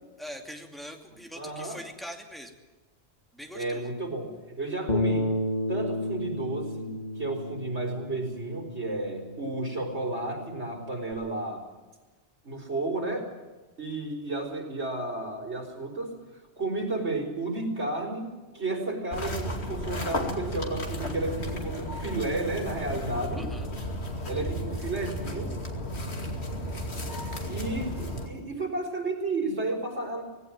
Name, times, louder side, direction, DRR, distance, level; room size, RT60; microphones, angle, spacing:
voice 1, 0.2-2.6 3.3-3.9 23.4-23.7, equal, ahead, 3 dB, 2.6 m, -42 dB
voice 2, 1.4-1.8 3.5-5.3 5.7-11.6 12.4-13.3 13.8-16.2 16.6-23.5 24.3-25.5 27.5-30.2, right 2 dB, 80° right, 1 dB, 5.0 m, -32 dB
Bass guitar, 4.9-11.1, left 1 dB, 40° left, 2.0 m, -33 dB
sound 1, 19.1-28.3, left 1 dB, 70° left, 2.8 m, -34 dB
19.0 x 17.0 x 9.2 m, 1.2 s
omnidirectional pair, 1.1 m